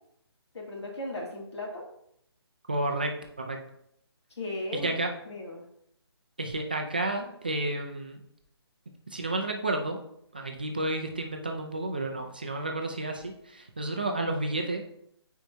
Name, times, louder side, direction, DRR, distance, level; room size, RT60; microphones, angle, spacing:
voice 1, 0.5-1.9 4.4-5.0 5.3-5.6, left 1 dB, 85° left, -1 dB, 2.3 m, -36 dB
voice 2, 2.7-3.6 4.8-5.1 6.4-8.2 9.1-10.0 10.3-14.8, right 2 dB, 20° right, 3 dB, 0.3 m, -31 dB
8.9 x 4.5 x 2.7 m, 0.72 s
hypercardioid pair, 175°, 14 cm